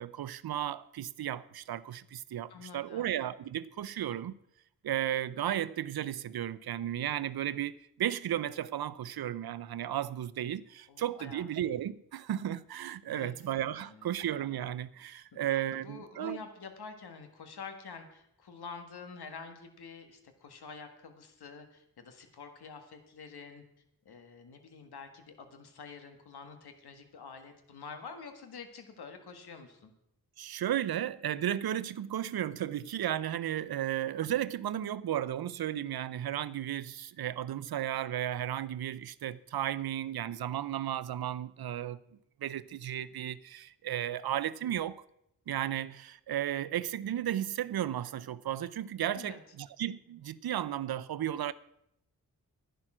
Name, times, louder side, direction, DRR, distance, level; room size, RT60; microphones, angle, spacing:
voice 1, 0.0-4.3 4.8-16.4 30.4-42.0 42.4-45.0 45.5-51.5, right 11 dB, 70° right, 0.6 m, -34 dB
voice 2, 2.5-3.1 10.9-11.5 13.1-13.3 13.8-14.2 15.1-15.2 15.8-23.6 24.1-29.9 49.1-49.4, left 5 dB, 85° left, 1.7 m, -47 dB
11.0 x 10.5 x 6.1 m
cardioid pair, 50°, 38 cm